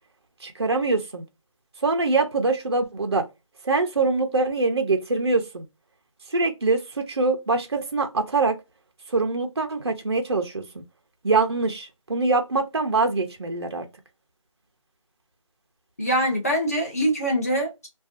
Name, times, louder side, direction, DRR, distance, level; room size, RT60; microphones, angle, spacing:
voice 1, 0.4-1.3 1.8-3.3 3.6-5.6 6.3-8.5 9.1-10.8 11.2-13.9, right 3 dB, 50° right, 0.5 m, -24 dB
voice 2, 16.0-17.9, right 1 dB, 25° left, 0.7 m, -24 dB
2.5 x 2.2 x 2.3 m
figure-of-eight pair, 170°, 18 cm